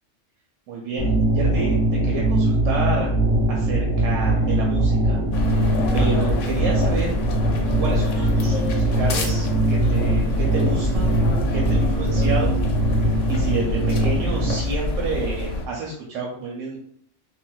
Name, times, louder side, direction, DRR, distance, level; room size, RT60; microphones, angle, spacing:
voice 1, 0.7-3.1 3.5-5.2 5.9-7.2 7.8-11.1 11.5-12.6 13.3-16.8, right 3 dB, 85° right, -2 dB, 1.0 m, -29 dB
sound 1, 1.0-14.5, right 1 dB, 20° left, 1.0 m, -21 dB
sound 2, 5.3-15.7, left 1 dB, 80° left, 0.9 m, -26 dB
3.8 x 2.1 x 2.3 m, 0.63 s
omnidirectional pair, 1.3 m